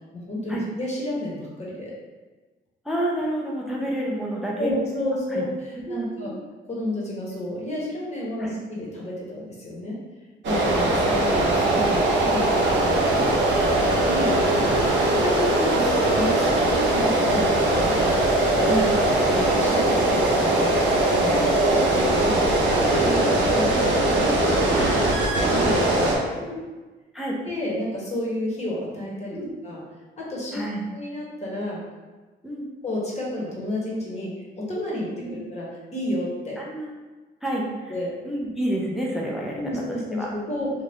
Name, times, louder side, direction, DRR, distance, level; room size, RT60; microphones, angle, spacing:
voice 1, 0.1-1.9 4.6-5.5 5.9-6.3 6.7-10.0 10.4-13.1 14.0-14.3 15.1-18.0 18.3-19.0 19.2-20.8 21.1-24.8 25.3-26.6 27.4-29.8 30.2-30.6 30.9-31.8 32.8-35.7 35.9-36.6 37.9-38.1 39.5-40.7, left 1 dB, 35° left, -5 dB, 1.1 m, -30 dB
voice 2, 2.8-4.7 5.3-5.5 5.9-6.4 8.4-8.5 10.5-11.3 13.2-14.9 18.6-18.8 21.3-21.5 24.7-25.3 26.4-26.6 27.1-27.4 29.3-29.5 30.5-30.9 32.4-32.7 35.2-35.4 36.6-36.9 37.4-38.0 38.2-40.7, right 1 dB, ahead, -3 dB, 0.5 m, -30 dB
sound 1, 10.4-26.2, right 1 dB, 65° right, 0.7 m, -21 dB
2.7 x 2.3 x 3.4 m, 1.3 s
cardioid pair, 90°, 20 cm